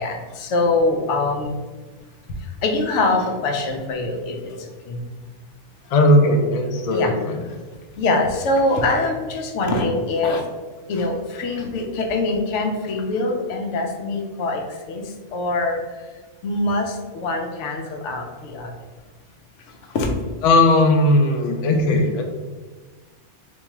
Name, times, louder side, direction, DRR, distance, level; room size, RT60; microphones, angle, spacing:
voice 1, 0.0-1.6 2.6-5.0 6.9-7.1 8.0-10.4 10.9-15.0 15.3-15.8 16.4-18.7 19.9-20.1, left 2 dB, 80° left, 3 dB, 0.9 m, -23 dB
voice 2, 5.9-7.3 20.4-22.2, left 1 dB, 60° left, 2 dB, 0.4 m, -17 dB
4.1 x 2.3 x 3.0 m, 1.3 s
omnidirectional pair, 1.2 m